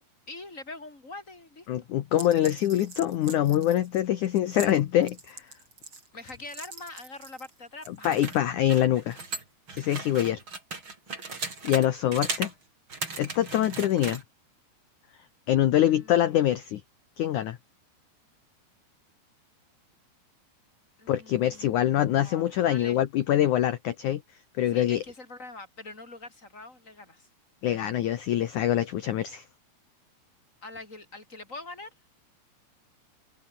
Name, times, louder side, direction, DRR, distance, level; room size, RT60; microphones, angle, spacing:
voice 1, 0.3-1.7 6.1-8.2 10.2-10.4 15.8-16.3 21.0-23.0 24.7-27.3 30.6-31.9, left 2 dB, 15° left, 5.4 m, -44 dB
voice 2, 1.7-5.5 7.9-9.2 9.7-10.4 11.6-12.5 13.2-14.2 15.5-16.8 17.2-17.6 21.1-24.2 24.6-25.0 27.6-29.4, left 12 dB, 70° left, 1.9 m, -24 dB
sound 1, 2.1-7.5 7.8-11.9 12.1-12.5 12.9-14.2, right 4 dB, 30° right, 5.1 m, -38 dB
omnidirectional pair, 5.1 m